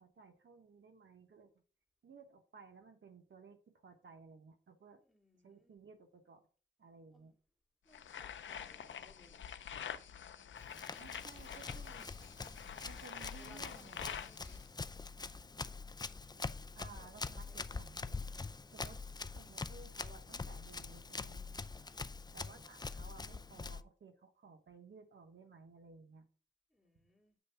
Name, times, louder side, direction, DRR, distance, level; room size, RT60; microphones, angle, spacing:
voice 1, 0.0-1.5 2.0-5.0 5.4-6.5 6.8-7.3 10.9-12.1 12.8-14.2 16.7-18.2 18.7-19.0 19.3-21.5 22.3-26.3, right 4 dB, 75° right, 1.2 m, -57 dB
voice 2, 5.0-5.7 7.1-7.4 7.8-9.5 13.2-14.6 16.9-17.8 21.8-22.2 26.7-27.4, left 2 dB, ahead, 2.2 m, -65 dB
sound 1, 7.9-14.7, left 8 dB, 75° left, 0.5 m, -47 dB
Run, 10.6-23.8, left 4 dB, 20° left, 0.4 m, -45 dB
7.6 x 3.3 x 5.7 m
cardioid pair, 70°, 20 cm